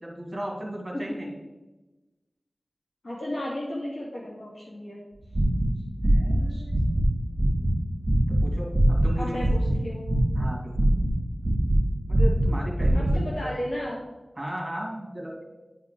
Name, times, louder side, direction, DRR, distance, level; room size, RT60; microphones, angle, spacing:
voice 1, 0.0-1.3 6.0-6.8 8.3-9.4 10.4-10.8 12.1-13.1 13.4-13.5 14.4-15.4, equal, 25° right, -2 dB, 2.3 m, -35 dB
voice 2, 0.9-1.3 3.0-5.0 6.5-6.6 9.2-10.1 12.9-14.0, left 1 dB, 70° left, -6 dB, 2.3 m, -34 dB
sound 1, 5.2-6.4 6.7-7.1 7.4-9.8 10.1-11.8 12.1-13.2, right 1 dB, 5° right, 2.4 m, -22 dB
10.0 x 4.5 x 3.7 m, 1.1 s
wide cardioid pair, 75°, 0 cm